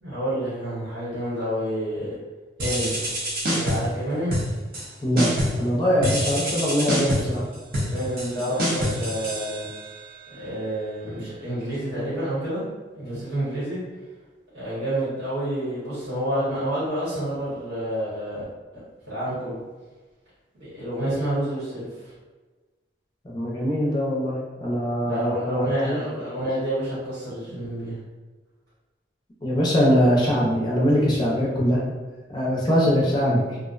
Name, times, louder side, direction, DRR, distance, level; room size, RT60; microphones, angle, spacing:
voice 1, 0.0-2.1 2.6-3.0 3.4-4.4 7.9-9.7 10.3-12.6 12.9-13.8 14.5-18.4 18.7-19.6 20.6-22.1 25.0-28.0, right 1 dB, 80° right, -11 dB, 1.0 m, -29 dB
sound 1, 2.6-4.0 4.3-4.9 5.2-5.7 6.0-10.0, equal, 50° right, 0.6 m, -26 dB
voice 2, 5.6-7.4 12.0-12.1 23.2-26.0 29.4-31.8 32.3-33.6, equal, 25° left, -5 dB, 0.5 m, -22 dB
2.5 x 2.0 x 2.4 m, 1.3 s
head